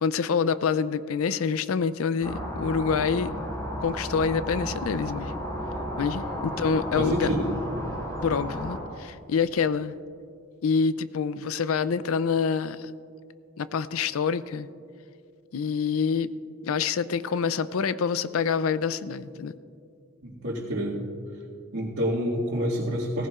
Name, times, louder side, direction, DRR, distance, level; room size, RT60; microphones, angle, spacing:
voice 1, 0.0-3.3 3.8-5.3 6.0-7.3 8.2-9.9 10.6-12.9 13.6-14.7 15.5-16.3 16.6-19.5, left 6 dB, 75° left, 15 dB, 0.4 m, -26 dB
sound 1, 2.2-8.8, equal, 20° left, 3.7 m, -33 dB
voice 2, 7.0-7.5 20.2-21.0 21.7-23.3, equal, 80° right, -9 dB, 2.0 m, -28 dB
17.5 x 15.5 x 2.4 m, 2.3 s
head